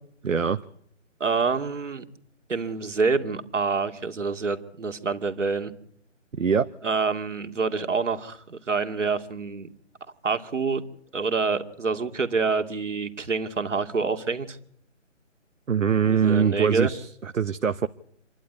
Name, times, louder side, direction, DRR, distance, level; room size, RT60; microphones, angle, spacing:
voice 1, 0.2-0.6 6.3-6.7 15.7-17.9, right 7 dB, 85° right, 11 dB, 1.1 m, -23 dB
voice 2, 1.2-2.0 2.5-5.7 6.8-9.7 10.2-10.8 11.1-14.6 16.1-16.9, right 4 dB, 70° right, 7 dB, 2.5 m, -27 dB
27.5 x 11.5 x 9.6 m, 0.69 s
hypercardioid pair, 170°, 38 cm